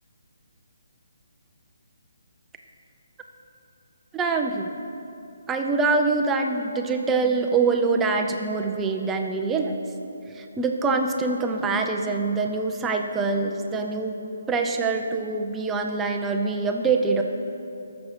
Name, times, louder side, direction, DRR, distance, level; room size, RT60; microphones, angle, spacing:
voice 1, 4.1-4.7 5.5-9.7 10.3-14.2 14.5-17.2, right 4 dB, 10° right, 3 dB, 0.5 m, -24 dB
18.5 x 7.1 x 4.9 m, 2.8 s
hypercardioid pair, 170°, 0 cm